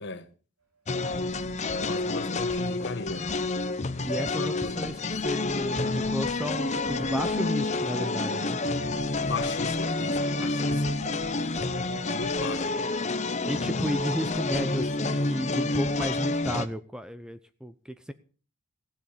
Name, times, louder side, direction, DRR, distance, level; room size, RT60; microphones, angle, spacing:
sound 1, 0.9-16.7, left 2 dB, 35° left, 0.8 m, -29 dB
voice 1, 1.8-3.2 4.3-4.8 9.2-11.0 12.1-12.7, left 3 dB, 55° left, 1.2 m, -36 dB
voice 2, 4.0-8.6 13.4-18.1, equal, 5° right, 0.6 m, -33 dB
sound 2, 6.6-16.7, equal, 85° right, 6.4 m, -43 dB
15.5 x 7.8 x 6.7 m
head